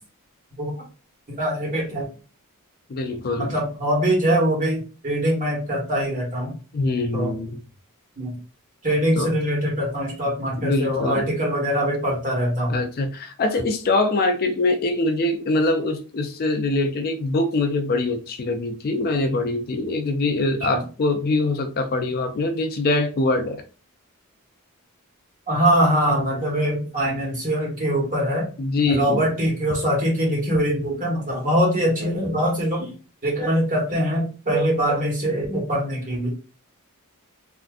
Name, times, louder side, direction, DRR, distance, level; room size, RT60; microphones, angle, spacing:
voice 1, 1.3-2.1 3.4-6.5 7.1-7.3 8.2-8.4 8.8-12.8 20.7-20.8 25.5-28.5 28.9-32.9 33.2-36.3, equal, 35° right, -3 dB, 1.4 m, -23 dB
voice 2, 2.9-3.5 6.7-7.6 9.2-9.3 10.6-11.3 12.7-23.6 28.6-29.3, left 2 dB, 45° left, 7 dB, 0.4 m, -23 dB
3.5 x 2.5 x 2.4 m, 0.36 s
head